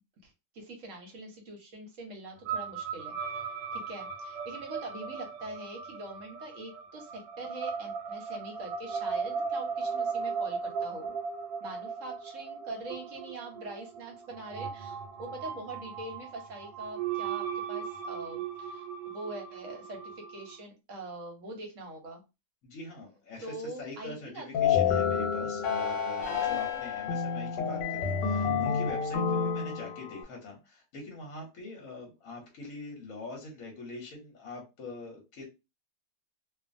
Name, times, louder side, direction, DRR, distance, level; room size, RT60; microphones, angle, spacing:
voice 1, 0.2-11.1 11.6-22.2 23.4-24.5 24.8-25.1, right 2 dB, 55° right, 1.0 m, -43 dB
sound 1, 2.5-20.6, right 6 dB, 90° right, 1.3 m, -37 dB
voice 2, 22.6-35.5, left 2 dB, 60° left, 1.1 m, -44 dB
sound 2, 24.5-30.2, left 7 dB, 85° left, 1.3 m, -29 dB
2.6 x 2.5 x 2.5 m
omnidirectional pair, 1.9 m